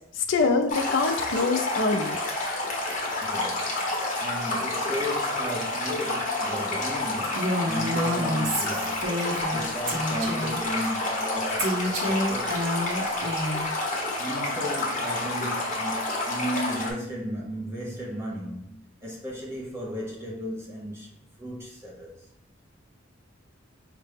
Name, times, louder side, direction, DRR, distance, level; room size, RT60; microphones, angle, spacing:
voice 1, 0.2-2.2, left 4 dB, 70° left, 0.5 m, -24 dB
Stream, 0.7-16.9, left 2 dB, 40° left, 0.9 m, -29 dB
voice 2, 3.2-3.9 4.2-9.1 9.5-12.6 14.2-21.1 21.4-22.3, equal, 15° right, 0.7 m, -35 dB
Female speech woman speaking, 7.4-9.6 9.9-10.6 11.6-13.7, equal, 75° right, 0.8 m, -28 dB
4.9 x 2.2 x 3.3 m
head